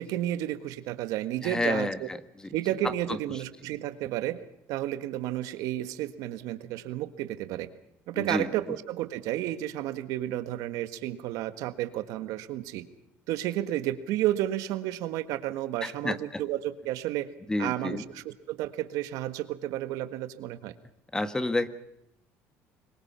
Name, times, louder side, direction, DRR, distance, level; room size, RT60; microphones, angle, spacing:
voice 1, 0.0-2.1 2.5-4.4 4.7-7.7 8.1-12.9 13.3-17.3 17.6-20.7, right 13 dB, 75° right, 11 dB, 1.6 m, -32 dB
voice 2, 1.4-2.5 2.8-3.2 8.1-8.8 15.8-16.4 17.5-18.0 21.1-21.7, left 2 dB, 10° left, 12 dB, 1.5 m, -30 dB
26.0 x 22.5 x 5.7 m, 0.80 s
cardioid pair, 115°, 6 cm